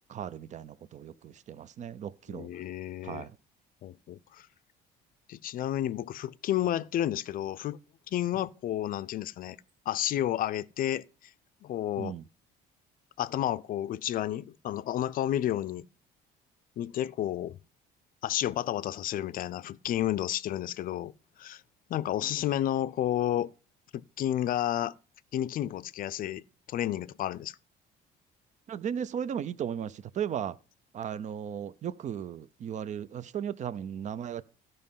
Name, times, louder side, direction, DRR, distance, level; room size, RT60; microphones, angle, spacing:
voice 1, 0.1-2.5 3.0-3.3 12.0-12.2 28.7-30.5 30.9-34.4, right 8 dB, 45° right, 0.6 m, -36 dB
voice 2, 2.3-3.3 3.8-4.5 5.3-7.8 8.1-9.6 9.9-11.0 11.6-12.2 13.2-15.9 16.8-17.6 18.2-21.1 21.4-21.6 21.9-23.5 23.9-24.9 25.3-26.4 26.7-27.6, left 12 dB, 55° left, 0.5 m, -31 dB
12.5 x 5.4 x 5.5 m
cardioid pair, 110°, 17 cm